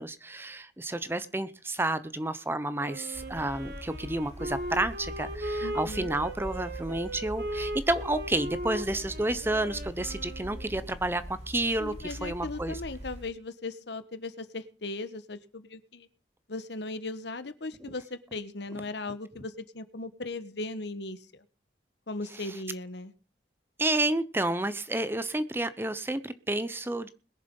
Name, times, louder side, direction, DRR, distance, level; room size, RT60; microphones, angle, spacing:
voice 1, 0.0-12.8 17.9-18.0 23.8-27.1, right 2 dB, 10° right, 13 dB, 0.7 m, -30 dB
Wind instrument woodwind instrument, 2.8-10.9, right 1 dB, 55° right, 2.1 m, -38 dB
sound 1, 3.1-13.2, equal, 35° right, 3.5 m, -42 dB
voice 2, 5.6-6.1 11.8-16.1 16.5-21.4 22.1-23.1, left 2 dB, 70° left, 12 dB, 1.2 m, -38 dB
21.0 x 7.3 x 5.3 m, 0.36 s
head